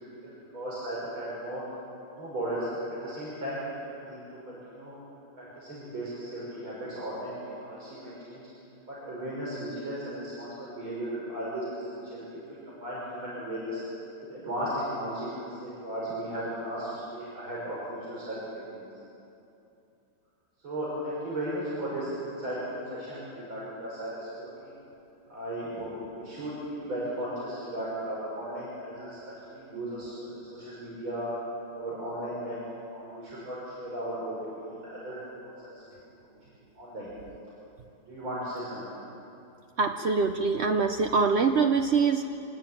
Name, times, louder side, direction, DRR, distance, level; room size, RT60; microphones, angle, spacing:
voice 1, 0.2-1.6 2.2-3.6 3.9-4.9 5.4-7.3 7.6-8.4 8.9-12.3 12.7-13.8 14.3-18.4 18.6-18.8 20.6-24.7 25.3-31.3 31.7-32.6 32.9-35.7 36.8-37.1 38.1-38.8, right 1 dB, 85° right, -7 dB, 6.8 m, -36 dB
voice 2, 39.8-42.2, right 5 dB, 55° right, 5 dB, 0.7 m, -24 dB
25.0 x 20.0 x 9.0 m, 2.8 s
omnidirectional pair, 2.2 m